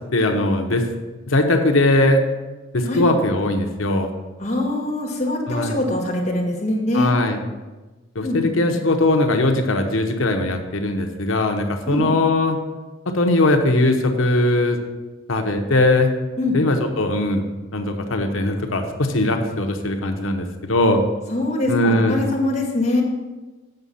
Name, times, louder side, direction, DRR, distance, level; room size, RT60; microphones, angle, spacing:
voice 1, 0.1-0.8 1.3-2.2 2.7-4.1 5.5-5.8 6.9-7.4 8.1-12.6 13.1-14.8 15.3-16.1 16.5-17.4 17.7-21.0 21.7-22.2, left 2 dB, 85° left, 4 dB, 1.0 m, -20 dB
voice 2, 4.4-7.1 8.2-8.8 11.9-12.1 16.4-16.6 21.3-23.0, left 1 dB, 35° left, -2 dB, 1.9 m, -23 dB
8.0 x 6.0 x 5.6 m, 1.2 s
head